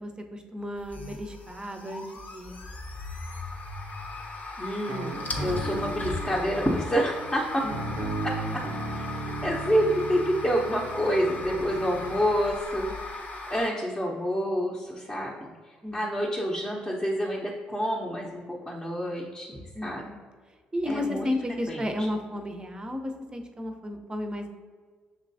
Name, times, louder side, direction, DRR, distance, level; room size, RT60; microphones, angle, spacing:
voice 1, 0.0-2.0 2.3-2.6 7.6-7.9 15.8-16.0 19.7-20.2 20.7-24.5, left 1 dB, 20° right, 5 dB, 0.7 m, -33 dB
sound 1, 0.8-13.7, left 2 dB, 40° left, 0.9 m, -37 dB
voice 2, 4.6-5.1 5.4-7.4 8.9-13.2 13.5-20.1 20.9-21.3 21.7-22.1, equal, 15° left, -4 dB, 0.9 m, -28 dB
sound 2, 4.9-12.3, right 3 dB, 70° right, 0.5 m, -37 dB
6.5 x 3.0 x 2.7 m, 1.5 s
hypercardioid pair, 50°, 4 cm